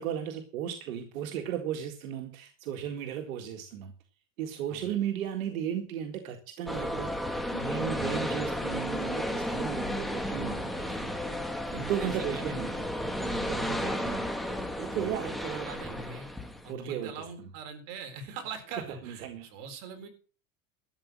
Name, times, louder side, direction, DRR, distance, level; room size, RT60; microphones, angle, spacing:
voice 1, 0.0-3.9 4.4-7.1 7.5-11.1 11.7-12.9 13.2-14.3 14.8-15.7 16.7-17.1 17.4-17.5 18.9-19.5, right 9 dB, 85° right, 6 dB, 1.9 m, -35 dB
sound 1, 6.7-16.7, equal, ahead, 1.3 m, -33 dB
voice 2, 12.0-12.7 13.6-14.0 15.0-16.3 16.6-20.1, right 4 dB, 55° right, 7 dB, 4.1 m, -43 dB
12.5 x 8.4 x 7.5 m, 0.39 s
supercardioid pair, 145°, 40 cm